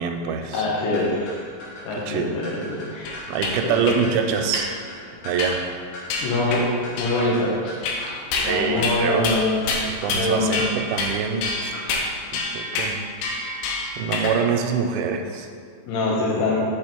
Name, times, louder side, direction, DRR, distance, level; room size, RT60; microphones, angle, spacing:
voice 1, 0.0-0.7 2.0-2.4 3.3-4.7 5.2-5.6 8.4-9.3 10.0-11.7 12.3-13.0 14.0-15.5, right 6 dB, 85° right, 5 dB, 3.1 m, -25 dB
voice 2, 0.5-1.4 1.8-3.1 3.6-3.8 6.2-6.7 7.0-7.7 8.3-9.6 10.1-10.7 15.9-16.6, left 2 dB, 70° left, -4 dB, 3.2 m, -24 dB
sound 1, 0.8-12.4, left 1 dB, 55° left, 3.4 m, -41 dB
sound 2, 3.1-3.5 3.9-4.0 4.5-4.7 5.4-5.7 6.1-6.6 7.0-7.4 7.8-8.5 8.8-9.0 9.2-9.4 9.7-10.3 10.5-11.1 11.4-14.4, left 3 dB, 90° left, 3.6 m, -27 dB
7.1 x 5.7 x 4.5 m, 2.1 s
omnidirectional pair, 5.5 m